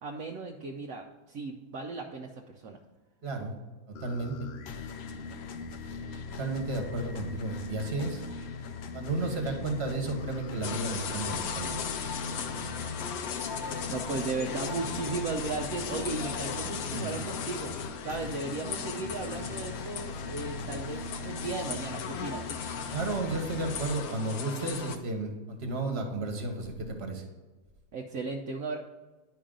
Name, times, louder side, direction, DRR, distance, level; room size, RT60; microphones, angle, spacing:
voice 1, 0.0-2.8 13.9-17.8 18.0-22.5 27.9-28.8, right 3 dB, 70° right, 1 dB, 1.1 m, -36 dB
voice 2, 3.2-3.5 3.9-4.3 6.4-8.2 8.9-11.8 16.9-17.2 22.9-27.2, right 2 dB, 45° right, 3 dB, 1.5 m, -33 dB
sound 1, 3.9-23.8, left 4 dB, 60° left, 0.7 m, -39 dB
sound 2, 10.6-25.0, left 7 dB, 80° left, 1.2 m, -38 dB
10.5 x 5.5 x 3.8 m, 1.2 s
omnidirectional pair, 1.5 m